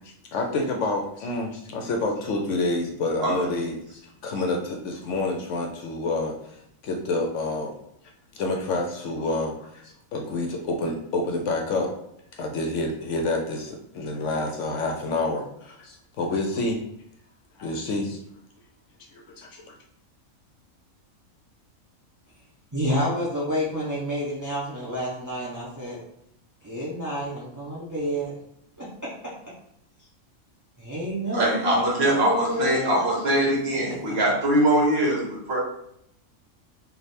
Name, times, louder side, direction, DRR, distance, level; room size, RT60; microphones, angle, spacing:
voice 1, 0.3-6.3 6.8-7.7 8.3-11.9 12.4-16.8 17.6-18.2 19.1-19.6, left 2 dB, 65° left, 2 dB, 0.8 m, -28 dB
voice 2, 22.7-26.0 26.6-28.3 28.8-29.1 30.9-33.0, equal, 25° right, -8 dB, 0.4 m, -29 dB
voice 3, 31.3-35.6, right 1 dB, 50° right, -3 dB, 1.2 m, -22 dB
3.3 x 2.4 x 4.2 m, 0.73 s
omnidirectional pair, 1.4 m